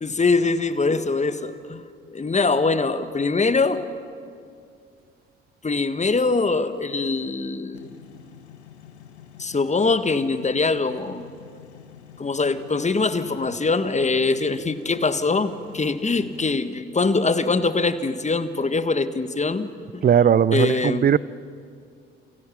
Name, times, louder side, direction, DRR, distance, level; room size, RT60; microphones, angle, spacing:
voice 1, 0.0-1.8 2.1-3.8 5.6-7.9 9.4-11.2 12.2-19.7 19.9-20.0 20.5-21.0, left 3 dB, 20° left, 11 dB, 1.7 m, -23 dB
sound 1, 7.7-16.5, left 9 dB, 80° left, 1.4 m, -47 dB
voice 2, 20.0-21.2, right 8 dB, 30° right, 22 dB, 0.6 m, -18 dB
29.5 x 28.5 x 5.9 m, 2.3 s
figure-of-eight pair, 50°, 33 cm